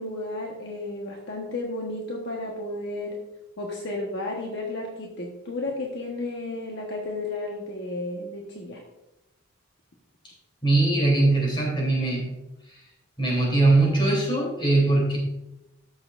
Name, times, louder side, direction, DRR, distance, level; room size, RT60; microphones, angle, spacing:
voice 1, 0.0-3.2 3.6-8.8, left 2 dB, 60° left, -1 dB, 1.2 m, -33 dB
voice 2, 10.6-12.3 13.2-15.2, right 2 dB, 25° left, -2 dB, 3.3 m, -21 dB
13.0 x 6.9 x 2.5 m, 0.93 s
head